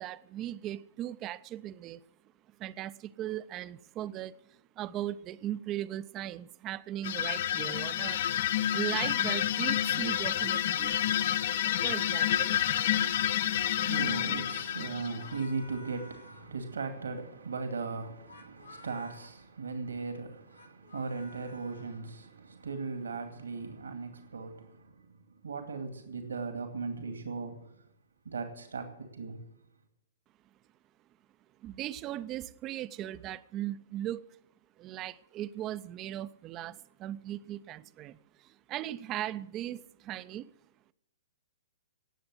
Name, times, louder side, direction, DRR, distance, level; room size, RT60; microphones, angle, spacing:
voice 1, 0.0-2.0 2.6-8.2 8.7-11.0 11.6-12.6 31.6-34.2 34.8-40.5, right 12 dB, 30° right, 0.6 m, -38 dB
sound 1, 7.0-15.4, left 11 dB, 50° left, 0.6 m, -29 dB
sound 2, 11.2-13.7 14.5-16.6 18.1-19.3 20.4-22.0, left 1 dB, 85° left, 3.0 m, -53 dB
voice 2, 13.4-25.1 25.4-27.8 28.3-28.9 29.1-29.4, right 4 dB, 75° right, 2.3 m, -38 dB
18.5 x 7.8 x 7.7 m
figure-of-eight pair, 115°, 0 cm